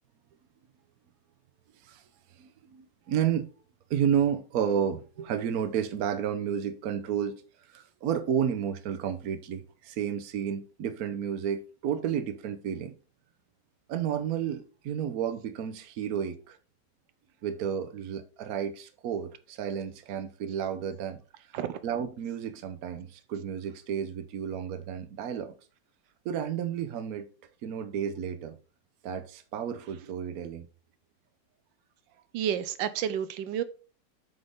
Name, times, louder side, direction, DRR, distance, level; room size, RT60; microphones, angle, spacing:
voice 1, 2.4-3.5 3.9-7.4 7.7-12.9 13.9-16.6 17.4-21.2 21.8-25.5 26.2-27.3 27.6-28.6 29.0-30.7, right 8 dB, 60° right, 1.2 m, -31 dB
voice 2, 32.3-33.6, right 9 dB, 90° right, 1.4 m, -30 dB
7.9 x 5.4 x 3.5 m
omnidirectional pair, 2.0 m